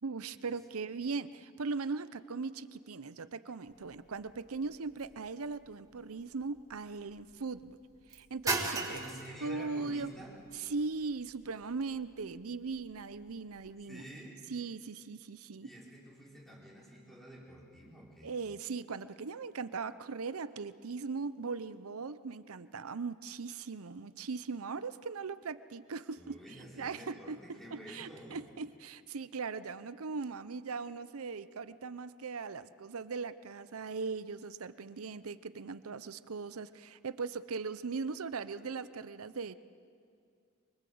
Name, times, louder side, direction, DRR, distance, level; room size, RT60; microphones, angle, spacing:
voice 1, 0.0-7.8 8.1-9.0 9.4-10.1 10.5-14.0 14.5-15.7 18.2-26.4 26.8-39.6, right 4 dB, 90° right, 14 dB, 0.7 m, -39 dB
sound 1, 3.7-13.8, right 3 dB, 15° right, 1.8 m, -42 dB
voice 2, 8.8-10.4 13.8-14.4 15.6-18.3 26.2-28.5, right 1 dB, ahead, -4 dB, 4.9 m, -49 dB
24.0 x 23.5 x 7.9 m, 2.3 s
head